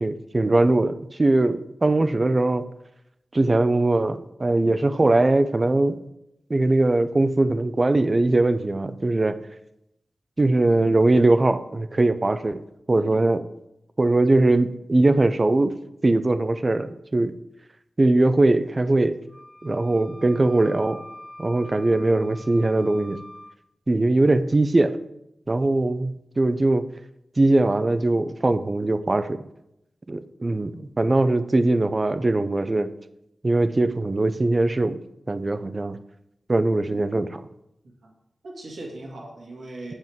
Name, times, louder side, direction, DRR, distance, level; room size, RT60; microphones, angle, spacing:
voice 1, 0.0-2.7 3.3-6.0 6.5-9.4 10.4-12.6 12.9-13.4 14.0-15.8 16.0-17.4 18.0-19.2 19.6-21.0 21.4-23.2 23.9-25.0 25.5-26.9 27.4-29.4 30.1-32.9 33.4-35.0 35.3-36.0 36.5-37.4, right 2 dB, 30° right, 12 dB, 0.5 m, -21 dB
Wind instrument woodwind instrument, 19.3-23.6, left 1 dB, ahead, 0.8 m, -44 dB
voice 2, 38.4-39.9, right 2 dB, 85° right, -1 dB, 2.2 m, -39 dB
9.7 x 7.5 x 3.6 m, 0.82 s
wide cardioid pair, 100°, 0 cm